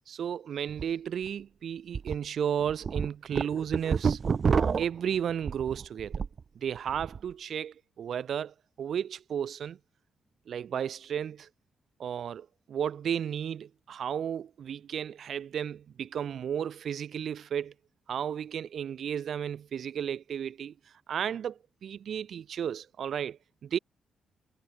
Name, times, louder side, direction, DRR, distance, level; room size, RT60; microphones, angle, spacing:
voice 1, 0.1-4.2 4.8-6.2 6.5-9.8 10.5-11.5 12.0-17.7 18.1-20.7 21.1-23.8, right 8 dB, 65° right, 0.9 m, -33 dB
sound 1, 0.7-0.8 1.3-1.4 1.9-2.1 2.6-6.4 6.8-7.2, right 6 dB, 45° right, 1.6 m, -28 dB
cardioid pair, 125°, 0 cm